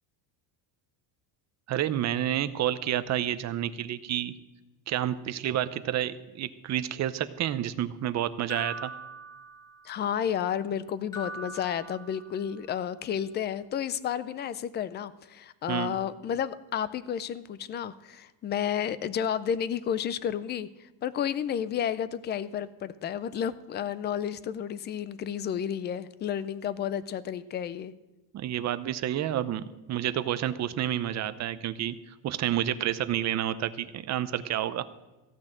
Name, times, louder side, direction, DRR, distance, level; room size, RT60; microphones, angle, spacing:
voice 1, 1.7-4.3 4.9-8.9 15.7-16.0 28.3-32.0 32.2-34.8, right 11 dB, 35° right, 12 dB, 0.7 m, -29 dB
sound 1, 8.5-10.0 11.1-12.6, right 1 dB, 10° left, 2.6 m, -41 dB
voice 2, 9.8-27.9, left 9 dB, 25° left, 16 dB, 0.3 m, -31 dB
15.5 x 6.1 x 8.8 m, 1.1 s
cardioid pair, 150°, 47 cm